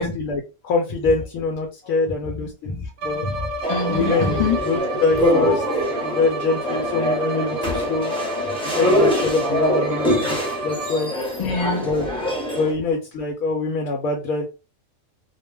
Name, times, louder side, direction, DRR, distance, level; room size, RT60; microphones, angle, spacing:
voice 1, 0.0-2.7 3.0-3.3 3.9-5.6 6.0-8.1 8.7-11.1 11.8-12.1 12.5-14.5, left 3 dB, 80° left, 1.0 m, -24 dB
voice 2, 2.6-4.6 5.9-6.0 11.4-12.0, left 5 dB, 55° left, 0.3 m, -26 dB
Bowed string instrument, 3.0-11.3, right 1 dB, 65° right, 0.6 m, -30 dB
sound 1, 3.6-12.7, equal, 5° left, 0.5 m, -24 dB
2.4 x 2.2 x 3.1 m
omnidirectional pair, 1.4 m